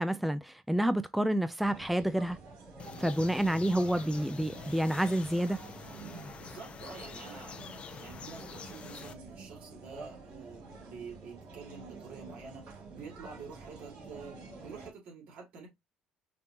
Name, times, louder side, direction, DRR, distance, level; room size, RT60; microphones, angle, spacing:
voice 1, 0.0-2.4 3.0-5.6, right 1 dB, ahead, 0.3 m, -29 dB
sound 1, 1.6-14.9, right 3 dB, 80° right, 2.2 m, -48 dB
sound 2, 2.8-9.1, left 7 dB, 45° left, 0.6 m, -46 dB
voice 2, 6.4-15.7, right 5 dB, 65° right, 2.7 m, -48 dB
5.2 x 2.9 x 2.9 m
cardioid pair, 90°, 3 cm